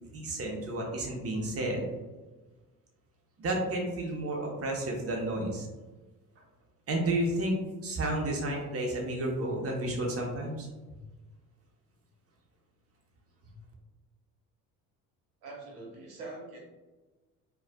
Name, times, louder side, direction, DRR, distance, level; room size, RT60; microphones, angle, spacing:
voice 1, 0.1-1.8 3.4-5.7 6.9-7.5 7.8-10.7, right 1 dB, 30° right, 0 dB, 1.0 m, -31 dB
voice 2, 15.4-16.6, right 2 dB, 75° right, -2 dB, 1.0 m, -43 dB
4.5 x 2.3 x 2.2 m, 1.2 s
hypercardioid pair, 55°, 44 cm